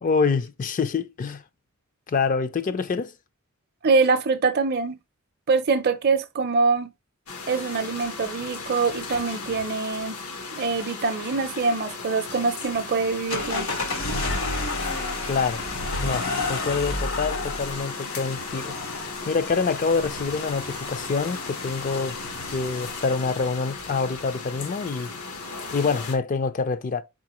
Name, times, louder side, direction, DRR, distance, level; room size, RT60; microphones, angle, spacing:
voice 1, 0.0-1.4 2.1-3.1 15.3-15.6 16.0-18.8 19.3-22.2 22.5-25.2 25.7-27.0, left 5 dB, 35° left, 0.4 m, -26 dB
voice 2, 3.8-5.0 5.5-6.9 7.5-10.2 10.6-13.7, right 4 dB, 45° right, 0.5 m, -24 dB
sound 1, 7.3-26.1, left 4 dB, 90° left, 1.0 m, -37 dB
sound 2, 13.3-23.5, left 3 dB, 70° left, 1.2 m, -31 dB
4.3 x 3.7 x 2.9 m
head